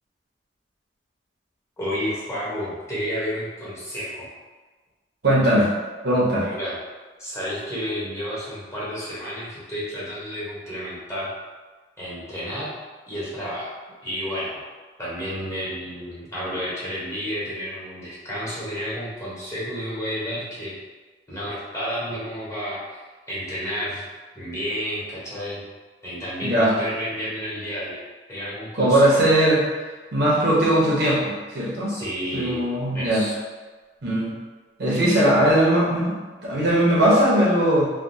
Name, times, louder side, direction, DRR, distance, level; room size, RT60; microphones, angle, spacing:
voice 1, 1.8-4.3 6.4-6.8 7.2-11.3 12.0-12.7 13.1-13.7 14.0-14.6 15.0-20.7 21.3-24.0 24.3-25.6 26.0-28.0 28.3-29.3 31.9-32.6 32.9-33.4, equal, 15° left, -9 dB, 1.0 m, -31 dB
voice 2, 5.2-5.7 6.0-6.5 26.4-26.7 28.7-29.6 30.1-31.9 32.3-33.2 34.0-34.3 34.8-37.9, right 1 dB, 65° right, -5 dB, 0.9 m, -19 dB
3.4 x 2.3 x 2.7 m, 1.3 s
head